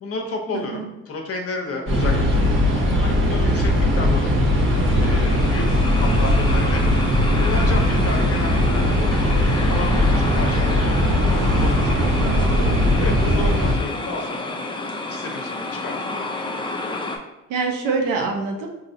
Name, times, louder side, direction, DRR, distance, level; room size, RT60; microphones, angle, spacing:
voice 1, 0.0-2.5 3.0-4.3 5.0-6.9 7.3-10.8 11.2-12.4 13.0-14.5 15.1-16.3, left 3 dB, 45° left, 3 dB, 0.9 m, -32 dB
voice 2, 0.5-0.9 12.0-12.7 13.3-13.4 17.5-18.7, right 4 dB, 75° right, 2 dB, 0.9 m, -26 dB
sound 1, 1.9-13.7, left 1 dB, 40° right, 1.0 m, -19 dB
sound 2, 4.1-17.2, left 2 dB, 15° left, 0.6 m, -31 dB
3.9 x 2.8 x 2.7 m, 0.99 s
supercardioid pair, 85°, 32 cm